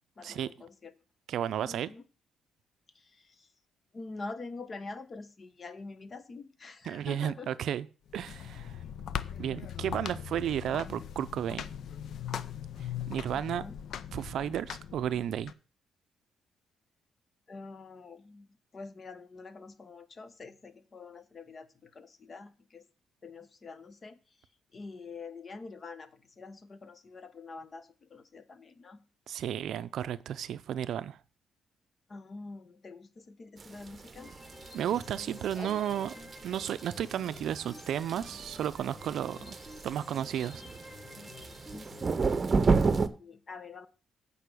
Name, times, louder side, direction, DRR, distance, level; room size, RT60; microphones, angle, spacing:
voice 1, 0.2-0.9 1.7-2.0 2.9-3.5 3.9-7.5 13.3-13.8 17.5-22.8 23.2-24.2 24.7-29.0 32.1-34.3 35.5-35.7 39.2-39.5 41.7-42.4 43.2-43.9, left 3 dB, 40° left, 12 dB, 1.0 m, -46 dB
voice 2, 1.3-1.9 6.9-7.9 8.1-8.8 9.4-11.6 12.8-13.6 14.1-15.5 29.3-31.2 34.7-36.1 36.4-39.6 39.8-40.6, right 10 dB, 70° right, 15 dB, 0.5 m, -33 dB
sound 1, 8.1-15.5, left 9 dB, 65° left, 0.6 m, -40 dB
sound 2, 33.6-43.1, right 4 dB, 35° right, 0.8 m, -31 dB
sound 3, 34.2-42.2, left 2 dB, 20° left, 1.5 m, -50 dB
8.5 x 5.4 x 6.1 m, 0.36 s
cardioid pair, 90°, 0 cm